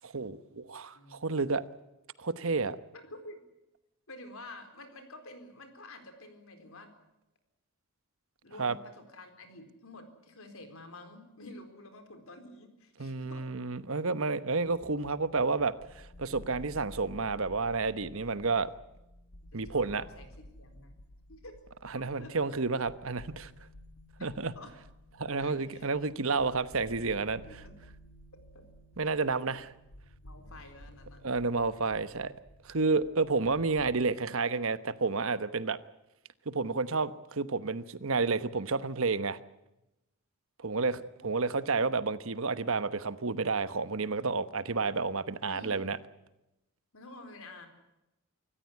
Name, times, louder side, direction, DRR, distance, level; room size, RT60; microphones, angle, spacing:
voice 1, 0.0-1.6 2.2-2.8 8.6-8.8 13.0-18.7 19.5-20.0 21.9-23.5 24.2-24.5 25.2-27.6 29.0-29.7 31.2-32.3 32.7-35.8 36.5-39.4 40.6-46.0, right 4 dB, 65° right, 1.1 m, -30 dB
voice 2, 0.9-1.3 2.9-3.4 4.1-6.9 8.4-13.5 19.5-20.9 21.3-21.6 22.2-22.4 24.2-24.3 24.5-24.7 25.4-25.9 27.3-27.8 28.3-28.7 29.4-29.6 30.2-31.2 40.8-41.3 45.4-45.8 46.9-47.7, left 2 dB, 65° left, 4.3 m, -50 dB
sound 1, 14.6-34.0, equal, 80° left, 1.7 m, -53 dB
26.0 x 14.5 x 9.6 m
head